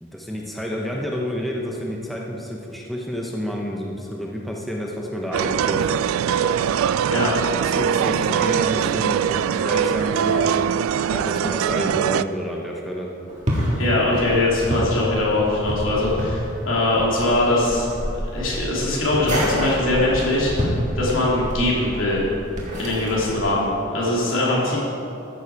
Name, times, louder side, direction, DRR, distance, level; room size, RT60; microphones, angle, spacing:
voice 1, 0.0-5.9 7.6-10.6 11.1-13.1, equal, ahead, -2 dB, 0.8 m, -29 dB
sound 1, 5.3-12.2, right 8 dB, 85° right, 0.3 m, -22 dB
sound 2, 13.3-23.4, equal, 35° right, 1.8 m, -28 dB
voice 2, 13.8-17.9 18.1-20.7 20.9-22.2 22.8-24.8, left 2 dB, 75° left, -5 dB, 3.0 m, -21 dB
13.5 x 7.9 x 4.7 m, 2.8 s
head